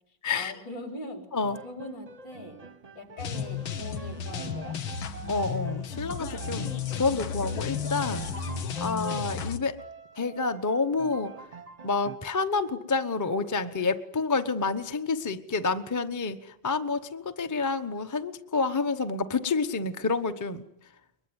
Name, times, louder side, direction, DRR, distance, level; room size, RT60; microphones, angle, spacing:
voice 1, 0.3-1.2 1.6-2.6 2.9-4.8, left 1 dB, 65° left, 5 dB, 4.8 m, -41 dB
Piano, 1.4-9.5 9.8-12.2, right 5 dB, 35° right, 0.6 m, -46 dB
sound 1, 3.2-9.6, left 7 dB, 85° left, 2.1 m, -33 dB
voice 2, 5.3-8.3 8.8-9.8 10.2-11.3 11.8-20.6, left 4 dB, 20° left, 7 dB, 0.5 m, -29 dB
22.5 x 21.5 x 9.8 m, 0.78 s
omnidirectional pair, 2.1 m